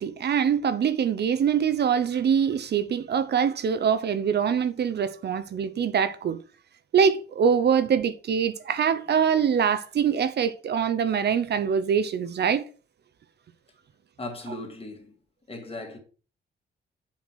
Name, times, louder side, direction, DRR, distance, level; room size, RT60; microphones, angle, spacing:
voice 1, 0.0-6.4 6.9-12.6, right 7 dB, 55° right, 0.8 m, -24 dB
voice 2, 14.2-15.1 15.5-16.0, left 2 dB, 30° left, 2.6 m, -37 dB
7.4 x 5.8 x 6.2 m
cardioid pair, 130°, 20 cm